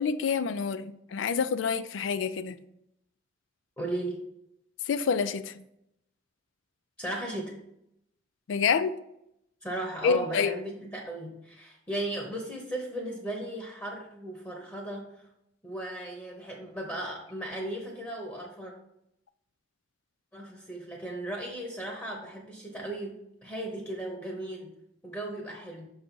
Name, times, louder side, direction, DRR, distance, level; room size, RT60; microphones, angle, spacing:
voice 1, 0.0-2.6 4.9-5.5 8.5-9.0 10.0-10.5, left 6 dB, 90° left, 0.4 m, -27 dB
voice 2, 3.8-4.2 7.0-7.6 9.6-15.3 15.6-18.7 20.3-24.7 25.0-25.9, right 1 dB, 15° left, 0.9 m, -36 dB
6.3 x 3.9 x 4.5 m
head